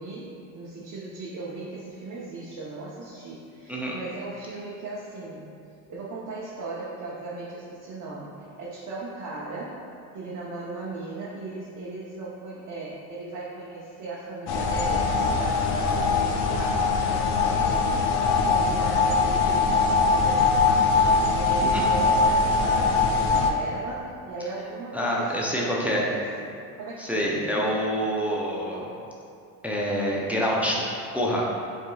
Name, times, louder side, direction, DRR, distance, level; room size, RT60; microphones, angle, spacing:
voice 1, 0.0-5.6 5.9-9.8 10.1-18.1 18.4-20.8 21.3-27.8, right 3 dB, 40° right, -6 dB, 0.8 m, -37 dB
sound 1, 14.5-23.5, left 4 dB, 60° left, 0.6 m, -22 dB
voice 2, 24.9-26.1 27.0-28.9 29.6-30.8 31.1-31.5, equal, 5° right, -4 dB, 0.5 m, -26 dB
7.0 x 2.7 x 2.3 m, 2.5 s
supercardioid pair, 95°, 46 cm